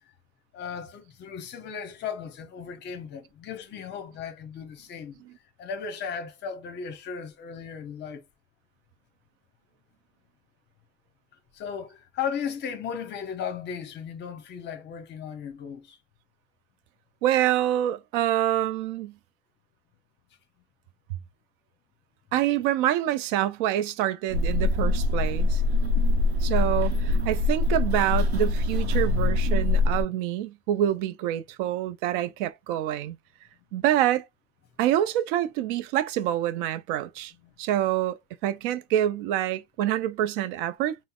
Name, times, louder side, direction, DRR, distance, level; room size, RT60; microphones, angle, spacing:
voice 1, 0.5-5.2 5.6-8.2 11.5-16.0 28.9-29.4 29.7-29.8 37.4-37.5, left 7 dB, 35° left, 0.8 m, -36 dB
voice 2, 17.2-19.1 22.3-25.6 26.4-33.2 33.7-34.3 34.8-37.3 37.6-41.0, right 12 dB, 55° right, 0.5 m, -26 dB
sound 1, 24.3-30.0, left 2 dB, 90° right, 0.7 m, -23 dB
4.0 x 2.0 x 2.3 m
hypercardioid pair, 100°, 31 cm